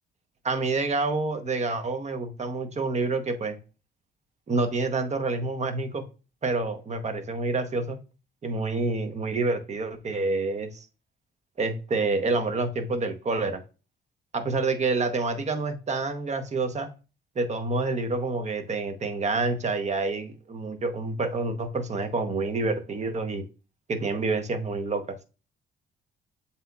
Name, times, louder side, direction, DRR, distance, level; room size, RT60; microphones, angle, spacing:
voice 1, 0.4-3.6 4.5-6.0 6.4-8.0 8.4-10.8 11.6-13.6 14.3-16.9 17.4-23.4 23.9-25.2, right 3 dB, 35° right, 8 dB, 0.9 m, -28 dB
7.5 x 2.9 x 2.3 m, 0.32 s
cardioid pair, 90°, 20 cm